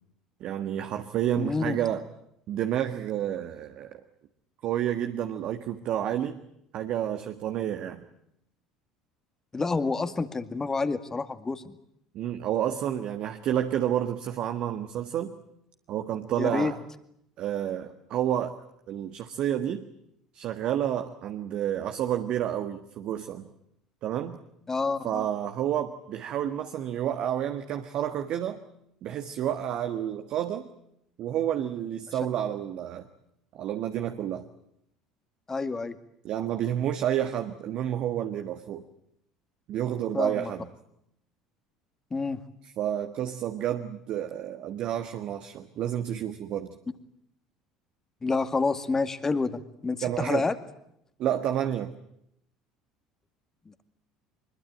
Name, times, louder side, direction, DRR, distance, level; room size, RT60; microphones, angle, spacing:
voice 1, 0.4-2.0 2.5-4.0 4.6-6.4 6.7-8.1 12.1-15.3 15.9-16.8 17.4-18.5 18.9-19.8 20.3-23.5 24.0-24.4 25.0-28.6 29.0-30.7 31.2-33.1 33.5-34.4 36.2-38.8 39.7-40.7 42.6-46.7 50.0-50.5 51.2-51.9, right 10 dB, 50° right, 7 dB, 1.6 m, -30 dB
voice 2, 1.4-1.8 9.5-11.8 16.4-16.7 24.7-25.3 35.5-36.0 40.1-40.5 42.1-42.4 48.2-50.6 53.7-53.8, left 4 dB, 20° left, 10 dB, 2.1 m, -28 dB
24.5 x 22.0 x 9.0 m, 0.76 s
figure-of-eight pair, 65°, 2 cm